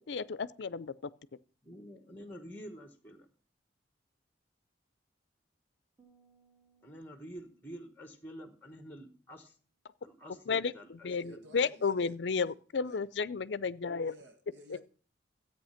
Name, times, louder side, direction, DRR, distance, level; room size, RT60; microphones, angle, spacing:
voice 1, 0.1-0.9 10.5-14.1, left 5 dB, 65° left, 0.5 m, -32 dB
voice 2, 1.6-3.3 6.8-9.6 10.0-11.6, equal, 10° left, 1.3 m, -48 dB
sound 1, 6.0-9.4, right 6 dB, 15° right, 2.8 m, -70 dB
voice 3, 11.0-12.2 12.4-12.5 12.8-13.0 14.0-14.8, equal, 65° right, 1.5 m, -55 dB
13.5 x 8.6 x 5.7 m
head